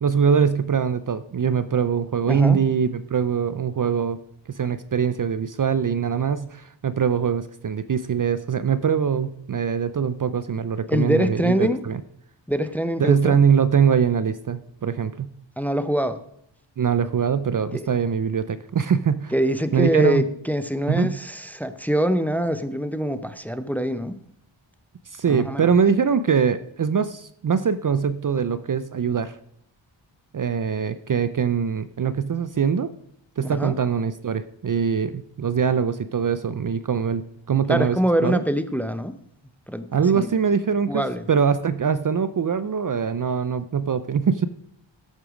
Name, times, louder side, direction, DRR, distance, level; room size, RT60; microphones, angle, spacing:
voice 1, 0.0-4.2 4.5-12.0 13.0-15.3 16.8-19.3 19.7-20.3 20.9-21.2 25.1-29.4 30.3-32.9 33.4-38.0 38.2-38.4 39.9-44.5, right 7 dB, 45° right, 14 dB, 0.5 m, -23 dB
voice 2, 2.3-2.6 10.9-11.8 12.5-13.4 15.6-16.2 17.7-17.8 19.3-24.2 25.3-25.7 33.4-33.7 37.7-39.1 39.7-39.9 40.1-40.3 40.9-41.3, equal, 5° left, 11 dB, 0.6 m, -24 dB
13.0 x 8.2 x 5.0 m, 0.72 s
wide cardioid pair, 115°, 47 cm